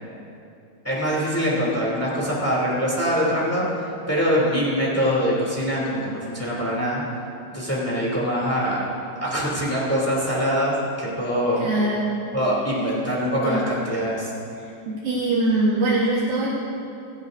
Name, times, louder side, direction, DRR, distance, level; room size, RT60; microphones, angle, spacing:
voice 1, 0.8-7.0 7.5-8.9 9.1-11.7 12.3-14.3, equal, 5° left, -6 dB, 1.2 m, -23 dB
voice 2, 11.6-12.1 13.4-13.6 14.9-16.5, right 2 dB, 60° right, -6 dB, 2.5 m, -22 dB
29.5 x 10.5 x 2.7 m, 2.6 s
omnidirectional pair, 5.5 m